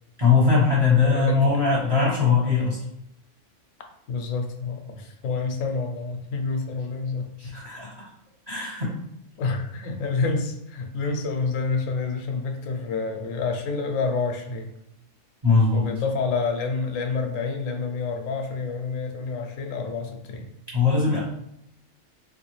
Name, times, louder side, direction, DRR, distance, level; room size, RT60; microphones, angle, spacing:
voice 1, 0.2-2.8 7.4-7.9 8.5-8.9 15.4-15.8 20.7-21.2, left 4 dB, 20° right, -5 dB, 1.1 m, -20 dB
voice 2, 1.0-1.6 4.1-7.6 9.4-14.7 15.7-20.5, left 4 dB, 85° left, 4 dB, 1.0 m, -28 dB
3.5 x 2.3 x 3.1 m, 0.76 s
omnidirectional pair, 1.3 m